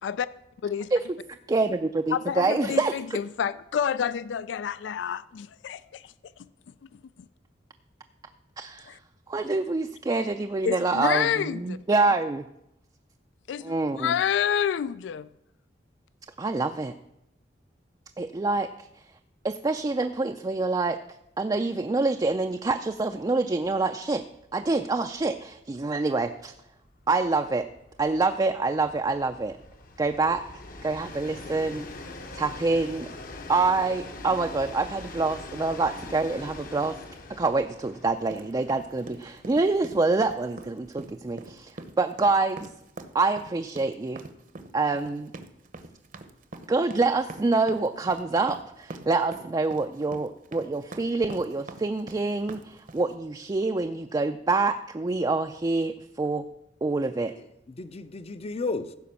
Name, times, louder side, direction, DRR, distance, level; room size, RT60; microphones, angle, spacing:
voice 1, 1.5-2.9 8.6-9.0 9.3-11.3 11.6-12.4 13.6-14.1 16.4-16.9 18.2-18.9 19.4-21.0 21.4-24.2 24.5-26.5 27.1-27.7 28.0-29.6 30.0-30.4 30.8-31.9 32.3-33.1 33.5-37.0 37.3-42.7 43.1-44.3 44.7-45.3 46.7-56.5 56.8-57.3, right 3 dB, 20° right, 0.4 m, -26 dB
voice 2, 2.1-6.5 6.8-7.3 8.9-9.0 10.6-11.8 13.5-15.3, left 8 dB, 85° left, 0.3 m, -29 dB
Train, 23.2-23.4 23.7-23.8 24.1-41.5, left 2 dB, 50° left, 1.0 m, -44 dB
sound 1, 38.3-53.1, right 2 dB, 50° right, 0.8 m, -44 dB
voice 3, 57.0-59.0, left 3 dB, 35° left, 0.6 m, -34 dB
15.0 x 5.1 x 6.9 m
head